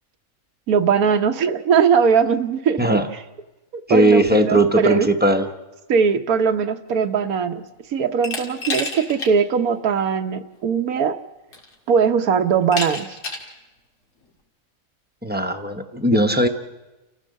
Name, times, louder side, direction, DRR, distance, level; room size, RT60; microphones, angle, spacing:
voice 1, 0.7-2.8 3.9-5.1 5.9-7.6 7.9-11.2 11.9-13.2, right 6 dB, 85° right, 8 dB, 1.4 m, -20 dB
voice 2, 3.9-5.5 15.2-16.5, right 1 dB, 10° right, 6 dB, 0.8 m, -18 dB
Glass, 8.2-9.3 9.7-9.8 11.0-11.1 11.5-11.9 12.7-13.5, left 3 dB, 80° left, 2.6 m, -29 dB
30.0 x 14.5 x 6.5 m, 1.1 s
omnidirectional pair, 1.5 m